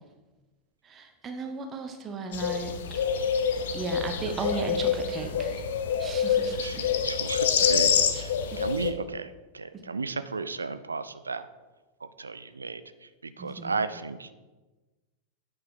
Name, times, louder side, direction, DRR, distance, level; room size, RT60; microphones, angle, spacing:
voice 1, 0.8-3.0 3.7-5.7 6.0-6.9 8.1-8.2 8.5-8.6 9.7-9.8 13.4-13.8, right 3 dB, 25° right, 5 dB, 0.9 m, -36 dB
sound 1, 2.3-8.9, left 7 dB, 60° left, 0.7 m, -26 dB
voice 2, 6.6-11.5 12.2-14.3, right 4 dB, 75° right, 13 dB, 0.5 m, -34 dB
9.4 x 5.5 x 4.8 m, 1.2 s
figure-of-eight pair, 90°, 0 cm